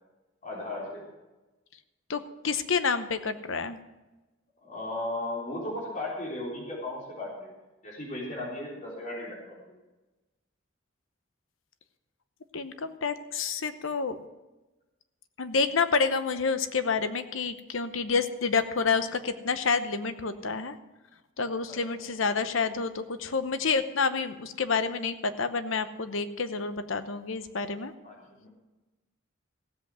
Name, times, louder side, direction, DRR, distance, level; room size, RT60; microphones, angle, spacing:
voice 1, 0.4-1.0 4.6-7.5 7.8-9.6 21.7-22.0 28.0-28.5, left 1 dB, 40° left, -4 dB, 3.7 m, -36 dB
voice 2, 2.1-3.8 12.5-14.2 15.4-20.8 21.4-27.9, left 5 dB, 90° left, 11 dB, 0.9 m, -29 dB
15.5 x 8.0 x 6.2 m, 1.1 s
head